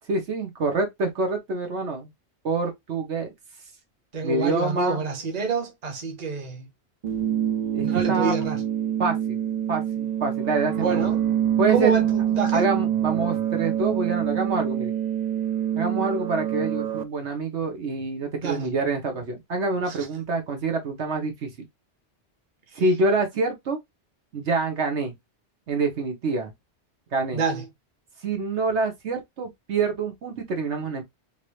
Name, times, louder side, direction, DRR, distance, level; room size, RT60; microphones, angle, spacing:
voice 1, 0.1-2.1 2.4-3.3 4.2-5.0 7.7-8.3 9.0-9.4 9.7-11.1 11.6-12.0 12.5-14.9 15.8-21.7 22.7-23.8 24.3-25.1 25.7-26.5 27.1-27.4 28.2-31.0, right 3 dB, 75° right, 1.4 m, -26 dB
voice 2, 4.1-6.7 7.8-8.6 10.8-11.2 11.7-12.7 18.4-18.7 19.9-20.0 27.3-27.6, right 5 dB, 40° right, 1.1 m, -27 dB
sound 1, 7.0-17.0, right 10 dB, 60° right, 0.4 m, -25 dB
3.7 x 2.7 x 3.0 m
omnidirectional pair, 1.2 m